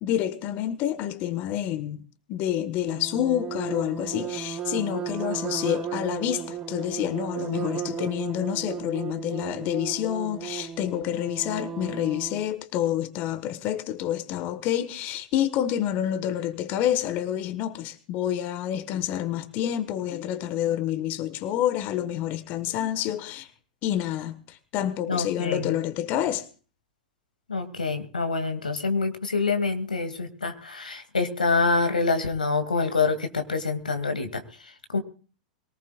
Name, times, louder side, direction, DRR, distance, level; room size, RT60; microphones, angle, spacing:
voice 1, 0.0-2.0 2.3-23.5 23.8-26.5, left 11 dB, 45° left, 1.4 m, -28 dB
sound 1, 2.9-12.5, right 8 dB, 25° right, 3.1 m, -34 dB
voice 2, 25.1-25.7 27.5-34.4 34.9-35.0, left 4 dB, 90° left, 2.3 m, -26 dB
23.0 x 18.5 x 2.4 m
hypercardioid pair, 100°, 4 cm